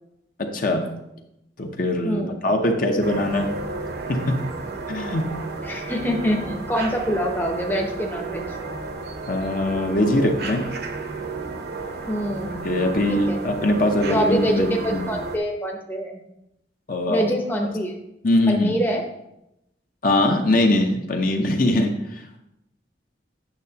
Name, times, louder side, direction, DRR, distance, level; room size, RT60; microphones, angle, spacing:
voice 1, 0.4-1.0 1.6-3.5 4.1-4.4 4.9-5.3 9.3-10.7 12.6-15.1 16.9-17.3 18.2-18.8 20.0-22.4, left 1 dB, 50° left, 3 dB, 0.8 m, -22 dB
voice 2, 2.0-2.5 5.6-8.5 12.1-12.8 13.1-13.4 14.1-16.2 17.1-17.9 18.5-19.0, equal, 10° left, 1 dB, 0.7 m, -25 dB
sound 1, 3.0-15.4, right 3 dB, 60° right, 0.8 m, -32 dB
8.8 x 6.4 x 2.8 m, 0.86 s
head